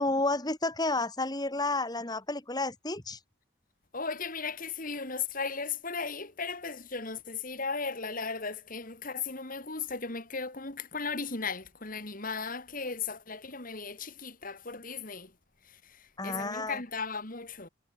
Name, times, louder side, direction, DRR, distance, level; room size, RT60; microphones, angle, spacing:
voice 1, 0.0-3.2 16.2-16.8, left 2 dB, 20° left, 1.9 m, -31 dB
voice 2, 3.9-15.3 15.8-17.7, left 4 dB, 40° left, 2.7 m, -36 dB
head